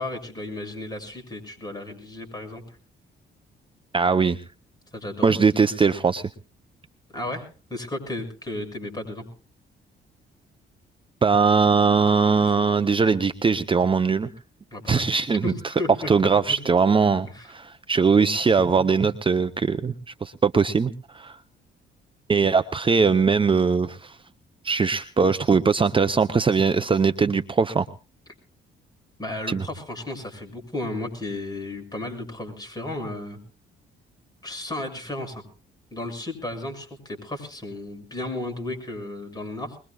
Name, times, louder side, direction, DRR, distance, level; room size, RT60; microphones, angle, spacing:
voice 1, 0.0-2.8 4.9-5.4 7.1-9.3 14.7-15.1 15.4-15.5 15.8-16.1 16.5-16.6 17.3-17.5 29.2-33.4 34.4-35.4 35.9-39.8, left 2 dB, 20° left, 4 dB, 6.9 m, -34 dB
voice 2, 3.9-4.4 5.2-6.3 11.2-14.3 14.9-15.5 16.1-21.4 22.3-24.2 24.6-27.9 29.5-29.6, right 5 dB, 25° right, 10 dB, 0.7 m, -21 dB
22.5 x 21.5 x 2.3 m, 0.35 s
cardioid pair, 90°, 20 cm